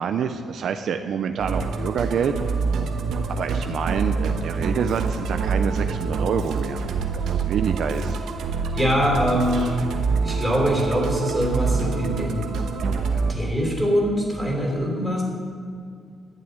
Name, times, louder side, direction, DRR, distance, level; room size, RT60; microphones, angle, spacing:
voice 1, 0.0-2.3 3.3-6.9 7.3-8.2 9.5-9.7, right 7 dB, 65° right, 7 dB, 0.6 m, -27 dB
Musical instrument, 1.4-13.3, right 4 dB, 80° right, 1.2 m, -26 dB
voice 2, 8.7-9.7 10.2-12.5 13.1-15.2, equal, ahead, -2 dB, 3.5 m, -23 dB
12.0 x 6.9 x 9.5 m, 2.3 s
cardioid pair, 135°, 0 cm